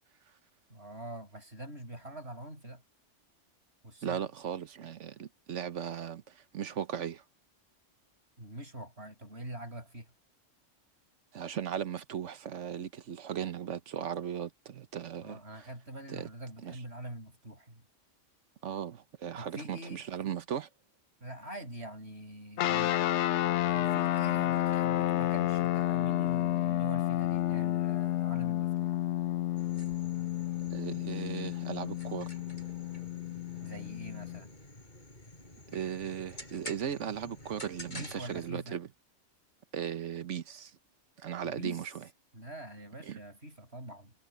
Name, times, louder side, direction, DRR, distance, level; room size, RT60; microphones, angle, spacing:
voice 1, 0.7-2.8 3.8-4.3 8.4-10.1 15.2-17.8 19.4-20.0 21.2-23.0 23.6-29.0 33.6-34.5 37.9-38.8 41.4-41.9 42.3-44.1, right 1 dB, 60° right, 6.0 m, -44 dB
voice 2, 4.0-7.2 11.3-15.7 16.1-16.3 16.6-16.8 18.6-20.7 24.3-24.5 30.7-32.3 35.7-38.9 39.7-40.7 41.2-41.9 43.0-43.2, right 9 dB, 75° right, 1.3 m, -37 dB
sound 1, 22.6-34.4, left 13 dB, 75° left, 0.9 m, -30 dB
sound 2, 29.6-38.5, left 1 dB, 40° left, 6.4 m, -49 dB
omnidirectional pair, 1.2 m